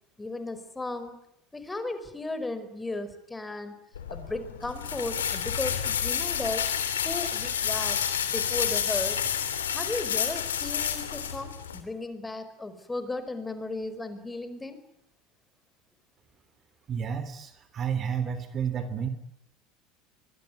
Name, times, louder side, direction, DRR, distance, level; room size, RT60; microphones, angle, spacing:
voice 1, 0.2-1.2 1.5-3.8 4.1-6.7 7.0-8.0 8.3-9.2 9.7-14.8, left 2 dB, 10° left, 11 dB, 5.0 m, -35 dB
sound 1, 4.0-11.8, left 8 dB, 75° left, 3.2 m, -29 dB
voice 2, 16.9-19.1, right 7 dB, 35° right, 11 dB, 3.3 m, -31 dB
25.0 x 22.5 x 9.5 m, 0.78 s
figure-of-eight pair, 75°, 0 cm